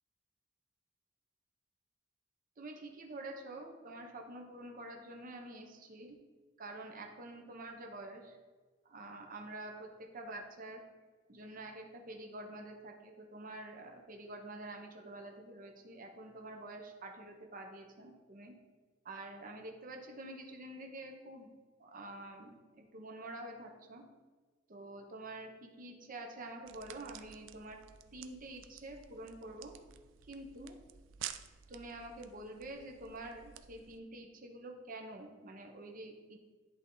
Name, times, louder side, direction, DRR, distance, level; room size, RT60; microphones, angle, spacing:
voice 1, 2.6-6.2 6.6-8.4 8.8-10.8 11.3-18.5 19.0-21.5 21.8-24.0 24.7-27.8 28.1-29.7 30.3-30.8 31.7-36.4, right 2 dB, 45° right, 2 dB, 0.8 m, -47 dB
sound 1, 26.6-34.0, right 10 dB, 75° right, 0.4 m, -51 dB
10.5 x 3.5 x 3.9 m, 1.4 s
head